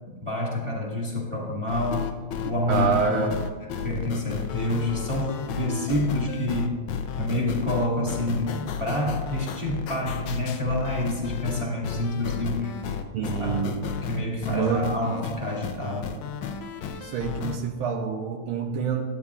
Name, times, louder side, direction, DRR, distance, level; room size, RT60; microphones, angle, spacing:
voice 1, 0.1-2.1 2.4-2.9 3.8-6.8 7.1-12.7 13.4-13.6 14.1-16.2, left 1 dB, 15° right, -3 dB, 1.4 m, -28 dB
sound 1, 1.7-17.6, left 7 dB, 75° left, 1.4 m, -33 dB
voice 2, 2.7-3.4 13.1-13.9 14.5-14.8 16.9-19.0, right 6 dB, 85° right, 2 dB, 1.6 m, -26 dB
12.0 x 8.7 x 2.4 m, 1.4 s
omnidirectional pair, 2.3 m